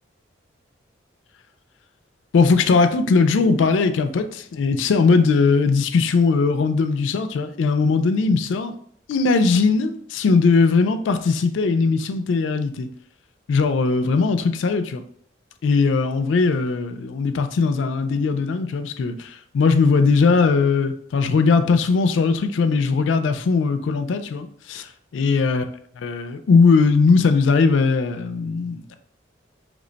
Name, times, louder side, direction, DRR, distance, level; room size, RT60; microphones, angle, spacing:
voice 1, 2.3-8.7 9.1-12.9 13.5-15.0 15.6-25.6 26.0-29.0, left 4 dB, 80° left, 0.3 m, -19 dB
3.0 x 2.1 x 3.8 m
head